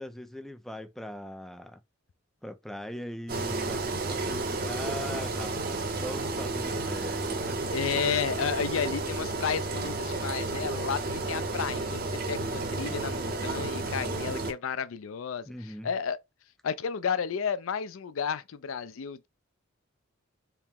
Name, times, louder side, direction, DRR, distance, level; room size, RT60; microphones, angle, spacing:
voice 1, 0.0-1.8 2.4-7.6 15.5-15.9, left 1 dB, ahead, 0.4 m, -41 dB
Engine, 3.3-14.5, right 2 dB, 45° right, 0.8 m, -32 dB
voice 2, 7.7-16.2 16.6-19.3, left 6 dB, 75° left, 0.4 m, -32 dB
4.3 x 2.1 x 3.6 m
head